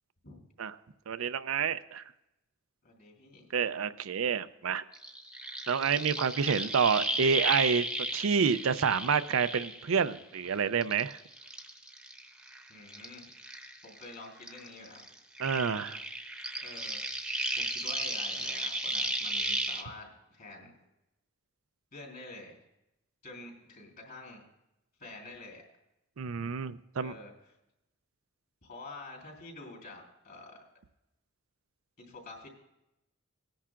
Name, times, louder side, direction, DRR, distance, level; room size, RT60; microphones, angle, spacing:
voice 1, 1.1-2.0 3.5-4.8 5.7-7.9 8.1-11.2 15.4-16.0 26.2-27.2, right 6 dB, 85° right, 12 dB, 0.5 m, -28 dB
voice 2, 2.8-3.5 12.7-13.3 13.8-15.1 16.6-17.3 17.5-20.7 21.9-22.6 23.2-24.4 25.0-25.6 27.0-27.3 28.6-30.6 32.0-32.5, left 2 dB, 50° left, 0 dB, 3.7 m, -48 dB
sound 1, 4.9-10.4 10.8-14.1 14.4-19.8, right 1 dB, 5° right, 0.9 m, -35 dB
19.5 x 10.0 x 2.5 m, 0.90 s
head